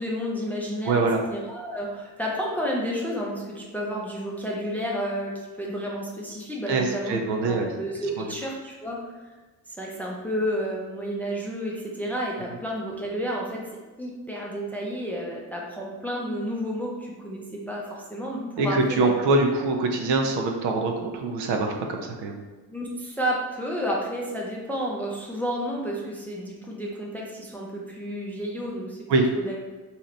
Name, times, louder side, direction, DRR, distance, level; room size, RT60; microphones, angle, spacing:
voice 1, 0.0-1.1 1.3-5.3 5.6-9.3 9.8-13.7 14.0-19.1 22.0-22.1 22.7-29.1 29.4-29.6, equal, 5° left, -2 dB, 0.5 m, -31 dB
voice 2, 0.9-1.2 6.7-7.7 8.2-8.3 18.6-22.4 29.1-29.3, right 3 dB, 55° right, 3 dB, 0.6 m, -24 dB
2.8 x 2.3 x 3.2 m, 1.3 s
hypercardioid pair, 50°, 50 cm